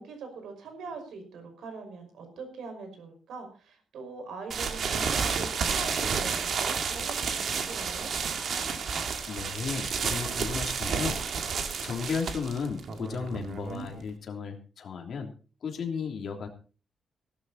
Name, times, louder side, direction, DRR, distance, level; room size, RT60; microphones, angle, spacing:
voice 1, 0.0-8.1, right 4 dB, 80° right, 6 dB, 5.5 m, -42 dB
sound 1, 4.5-14.1, right 6 dB, 55° right, 2.1 m, -31 dB
voice 2, 9.3-11.2 11.8-15.3 15.6-16.5, left 6 dB, 50° left, 3 dB, 3.2 m, -34 dB
16.5 x 12.5 x 4.2 m, 0.37 s
wide cardioid pair, 170°, 0 cm